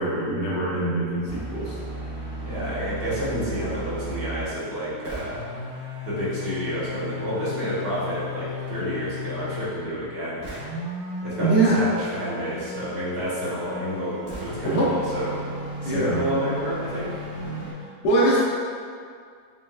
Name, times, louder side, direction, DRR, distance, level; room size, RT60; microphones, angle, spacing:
voice 1, 0.0-1.8 11.4-11.8 14.6-14.9 15.8-16.2 18.0-18.4, right 2 dB, 75° left, -6 dB, 1.4 m, -22 dB
sound 1, 1.3-4.5 5.0-9.7 10.4-17.7, left 1 dB, 50° right, 0.3 m, -35 dB
voice 2, 2.4-5.4 6.0-10.4 11.2-15.4 15.8-17.2, equal, 65° right, -9 dB, 1.3 m, -29 dB
5.4 x 2.1 x 2.2 m, 2.1 s
omnidirectional pair, 1.8 m